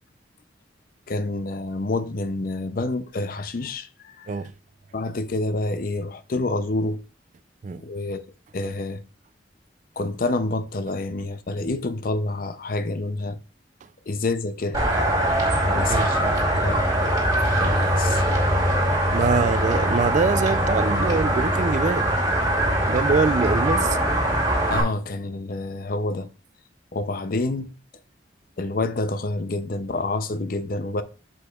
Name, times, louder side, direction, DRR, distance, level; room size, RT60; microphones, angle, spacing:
voice 1, 1.1-4.3 4.9-7.0 7.8-8.2 8.5-9.0 10.0-13.4 14.1-14.8 15.6-16.8 17.3-18.2 24.7-26.3 26.9-27.7 28.6-31.0, left 2 dB, 50° left, 0.5 m, -28 dB
sound 1, 14.7-24.8, right 1 dB, 20° right, 2.4 m, -22 dB
voice 2, 19.1-22.1 22.8-24.0, right 4 dB, 40° right, 0.3 m, -24 dB
8.2 x 6.9 x 2.3 m
head